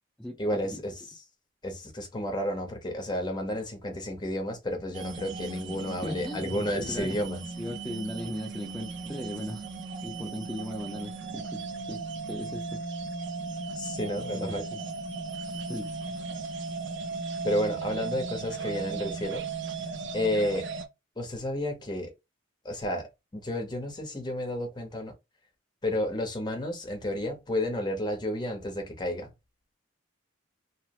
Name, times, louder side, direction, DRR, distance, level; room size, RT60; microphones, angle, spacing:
voice 1, 0.4-1.2 1.6-7.4 13.8-14.6 17.4-19.4 20.1-20.7 21.2-22.1 22.6-23.1 23.3-25.1 25.8-29.3, left 1 dB, 25° left, 0.7 m, -31 dB
sound 1, 4.9-20.9, right 4 dB, 65° right, 0.4 m, -36 dB
voice 2, 6.0-7.2 7.6-9.6 10.0-12.8 14.3-14.8 15.5-15.9, left 1 dB, 5° left, 0.3 m, -38 dB
2.9 x 2.0 x 2.8 m
head